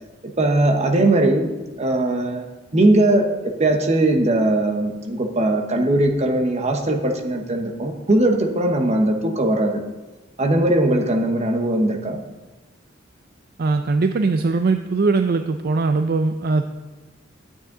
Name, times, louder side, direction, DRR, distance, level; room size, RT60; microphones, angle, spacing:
voice 1, 0.2-2.4 2.7-9.8 10.4-12.2, right 1 dB, 35° right, 5 dB, 1.1 m, -20 dB
voice 2, 13.6-16.7, right 3 dB, 55° right, 8 dB, 0.4 m, -20 dB
12.0 x 8.6 x 3.9 m, 1.2 s
head